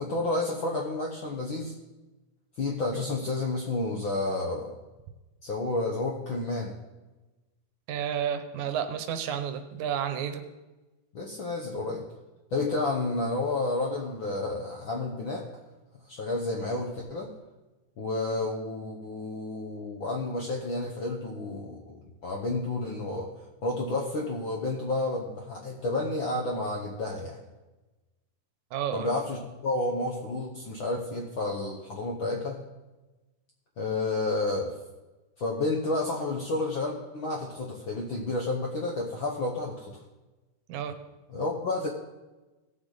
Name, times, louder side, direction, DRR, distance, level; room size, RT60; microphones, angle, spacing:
voice 1, 0.0-1.7 2.6-4.7 5.4-6.7 11.1-12.0 12.5-15.5 16.1-17.3 18.0-23.3 23.6-27.4 28.9-32.6 33.8-34.7 35.4-40.0 41.3-41.9, left 2 dB, 65° left, 0 dB, 1.2 m, -30 dB
voice 2, 7.9-10.4 28.7-29.1 40.7-40.9, right 9 dB, 75° right, 8 dB, 2.1 m, -31 dB
17.5 x 7.4 x 4.0 m, 1.1 s
omnidirectional pair, 3.6 m